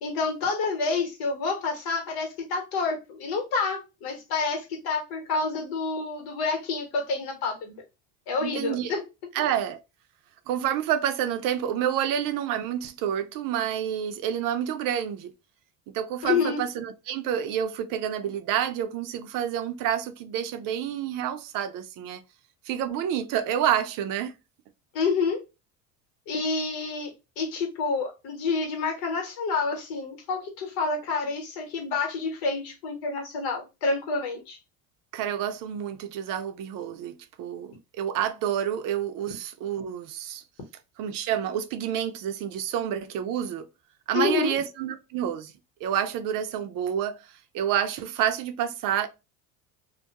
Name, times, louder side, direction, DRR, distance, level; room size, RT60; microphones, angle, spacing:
voice 1, 0.0-7.7 8.3-9.0 16.2-16.6 24.9-25.4 26.3-27.1 27.4-34.6 44.1-44.5, left 4 dB, 70° left, 1.1 m, -28 dB
voice 2, 8.4-8.9 9.3-9.8 10.5-15.3 15.9-22.2 22.7-24.3 35.1-40.4 41.0-43.7 44.1-45.5 45.8-49.1, right 10 dB, 60° right, 0.5 m, -29 dB
2.2 x 2.1 x 2.7 m
supercardioid pair, 95°, 38 cm